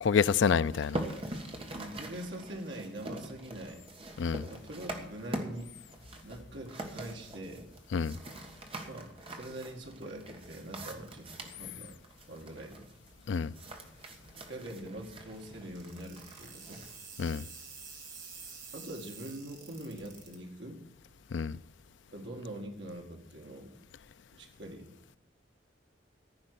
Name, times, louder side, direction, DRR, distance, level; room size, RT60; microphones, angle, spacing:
voice 1, 0.0-1.0 4.2-4.4 7.9-8.2 13.3-13.5 17.2-17.4 21.3-21.6, left 6 dB, 70° left, 0.4 m, -27 dB
sound 1, 0.7-17.0, right 1 dB, 30° right, 1.5 m, -44 dB
voice 2, 1.7-3.8 4.5-5.7 6.2-7.7 8.9-11.9 12.3-12.9 14.5-16.8 18.7-20.8 22.1-23.7 24.3-24.9, right 1 dB, 65° right, 2.0 m, -43 dB
sound 2, 15.8-20.4, right 5 dB, 45° right, 2.6 m, -48 dB
14.5 x 5.4 x 9.7 m
head